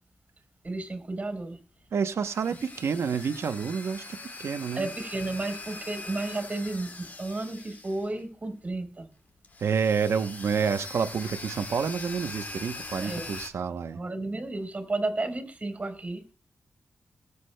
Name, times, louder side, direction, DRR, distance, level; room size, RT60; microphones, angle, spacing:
voice 1, 0.6-1.6 4.8-9.1 13.0-13.3 13.9-16.2, right 2 dB, 30° right, 3.7 m, -32 dB
sound 1, 1.8-8.4 8.7-8.8 9.4-13.5, left 3 dB, 40° left, 1.8 m, -42 dB
voice 2, 1.9-4.9 9.6-14.0, right 6 dB, 75° right, 0.9 m, -29 dB
21.5 x 8.2 x 2.2 m
wide cardioid pair, 100°, 5 cm